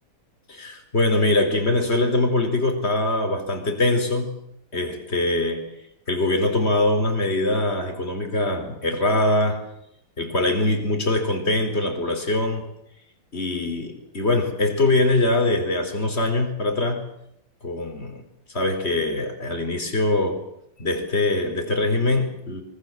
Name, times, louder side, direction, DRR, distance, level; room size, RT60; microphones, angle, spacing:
voice 1, 0.5-4.3 4.7-5.7 6.1-9.6 10.2-12.7 13.3-17.0 17.6-18.2 18.5-20.5 20.8-22.6, left 2 dB, 30° left, 5 dB, 4.7 m, -23 dB
25.0 x 24.5 x 7.5 m, 0.75 s
omnidirectional pair, 2.2 m